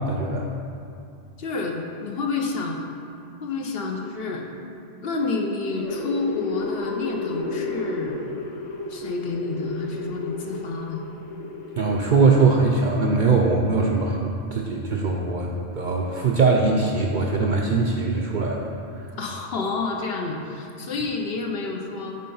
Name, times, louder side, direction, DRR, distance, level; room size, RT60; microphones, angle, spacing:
voice 1, 0.1-0.5 11.8-18.6 18.9-19.1, right 4 dB, 55° right, -1 dB, 0.5 m, -21 dB
voice 2, 1.4-2.8 3.4-4.5 5.0-8.3 8.9-11.0 19.2-22.2, left 3 dB, 60° left, 1 dB, 0.9 m, -29 dB
sound 1, 5.7-12.9, left 3 dB, 90° left, 1.1 m, -33 dB
8.4 x 3.3 x 5.5 m, 2.5 s
omnidirectional pair, 1.2 m